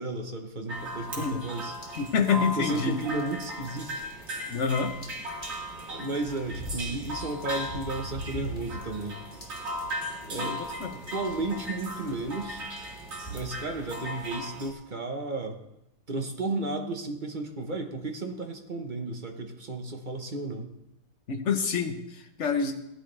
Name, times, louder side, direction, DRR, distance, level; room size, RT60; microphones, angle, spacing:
voice 1, 0.0-1.7 2.3-4.0 5.8-9.2 10.2-10.6 10.9-12.7 13.3-15.6 16.1-20.7, right 2 dB, 30° right, 4 dB, 1.0 m, -33 dB
sound 1, 0.7-14.7, equal, 70° right, 3.5 m, -37 dB
sound 2, 1.6-13.6, equal, 25° left, 2.7 m, -44 dB
voice 2, 2.0-3.0 4.5-4.9 10.4-10.9 21.3-22.7, left 6 dB, 45° left, 6 dB, 1.2 m, -27 dB
17.0 x 11.0 x 3.4 m, 0.87 s
omnidirectional pair, 2.1 m